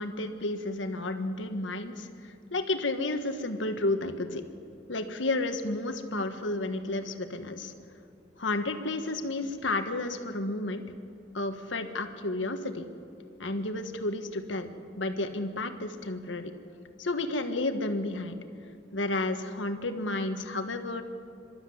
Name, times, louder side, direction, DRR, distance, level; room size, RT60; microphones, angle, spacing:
voice 1, 0.0-2.1 2.5-4.4 4.9-7.7 8.4-10.8 11.3-12.8 13.4-14.7 15.0-16.5 17.0-18.4 18.9-21.0, left 2 dB, 80° left, 7 dB, 1.5 m, -31 dB
26.5 x 13.0 x 7.9 m, 2.5 s
head